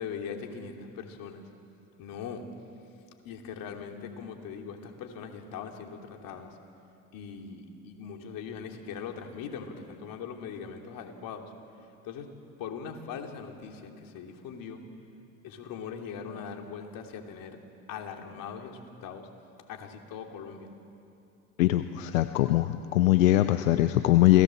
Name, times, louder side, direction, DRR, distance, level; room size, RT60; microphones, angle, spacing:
voice 1, 0.0-1.4 2.0-2.4 3.2-6.6 7.1-11.5 12.0-12.3 12.6-14.8 15.4-17.6 17.9-19.3 19.7-20.7, left 6 dB, 60° left, 3 dB, 3.1 m, -40 dB
voice 2, 21.6-24.4, left 15 dB, 85° left, 10 dB, 0.8 m, -22 dB
28.5 x 18.5 x 7.7 m, 2.7 s
hypercardioid pair, 75°, 39 cm